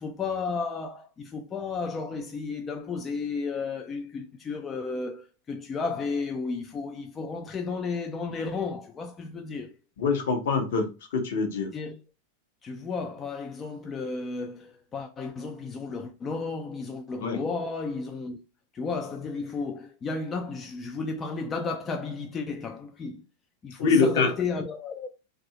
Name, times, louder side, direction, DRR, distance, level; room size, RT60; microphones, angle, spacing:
voice 1, 0.0-9.7 11.7-12.0 12.6-18.4 18.7-23.2 23.6-25.1, left 4 dB, 25° left, 0.3 m, -33 dB
voice 2, 10.0-11.7 17.2-17.4 23.8-24.3, left 4 dB, 55° left, 0.8 m, -24 dB
2.6 x 2.3 x 2.8 m
figure-of-eight pair, 90°, 0 cm